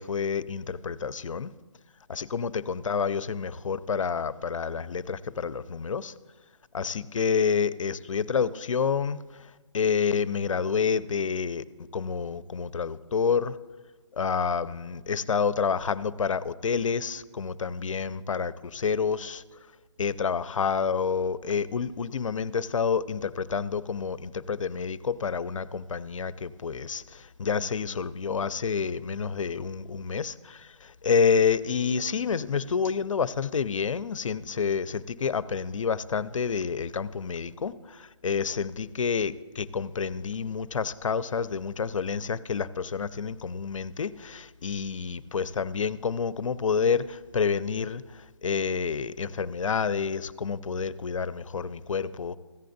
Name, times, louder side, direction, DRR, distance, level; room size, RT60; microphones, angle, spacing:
voice 1, 0.0-1.5 2.1-6.1 6.7-9.2 9.7-11.6 11.9-13.6 14.2-19.4 20.0-52.4, left 6 dB, 85° left, 16 dB, 0.5 m, -28 dB
15.0 x 8.5 x 2.6 m, 1.3 s
hypercardioid pair, 170°, 16 cm